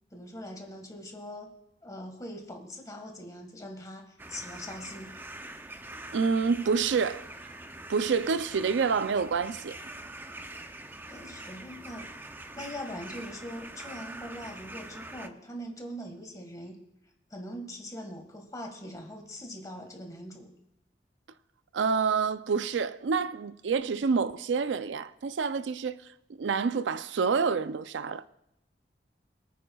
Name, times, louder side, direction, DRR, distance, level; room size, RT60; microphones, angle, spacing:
voice 1, 0.1-1.5 1.8-5.1 11.1-12.1 12.5-16.8 17.3-20.5, equal, 20° left, 1.7 m, -42 dB
sound 1, 4.2-15.3, right 2 dB, 10° right, 0.5 m, -44 dB
voice 2, 6.1-7.2 7.9-9.8 21.7-26.0 26.4-28.2, right 5 dB, 85° right, 0.4 m, -27 dB
23.0 x 9.1 x 2.3 m
head